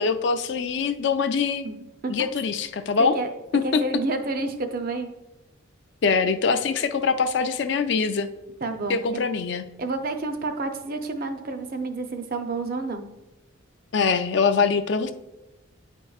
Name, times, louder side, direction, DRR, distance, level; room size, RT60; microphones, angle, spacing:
voice 1, 0.0-1.7 2.1-3.2 3.5-3.8 6.0-8.3 8.9-9.7 13.9-15.1, left 5 dB, 55° left, 9 dB, 0.4 m, -23 dB
voice 2, 3.6-5.1 8.6-9.3 9.8-13.0, right 3 dB, 45° right, 6 dB, 0.5 m, -29 dB
9.6 x 4.5 x 2.3 m, 1.0 s
head